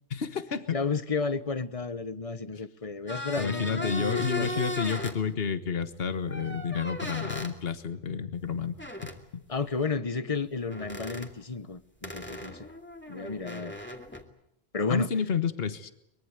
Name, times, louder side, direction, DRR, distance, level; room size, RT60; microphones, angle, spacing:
voice 1, 0.1-0.8 3.4-8.8 9.0-9.4 14.9-15.9, left 6 dB, 60° left, 11 dB, 1.6 m, -30 dB
voice 2, 0.7-4.5 9.5-12.7 13.1-13.8 14.7-15.1, left 4 dB, 30° left, 13 dB, 1.1 m, -32 dB
sound 1, 3.1-5.2 6.3-7.5 8.8-9.2 10.7-11.3 12.0-14.2, left 1 dB, 10° left, 2.5 m, -37 dB
23.5 x 22.5 x 8.2 m, 0.78 s
omnidirectional pair, 1.2 m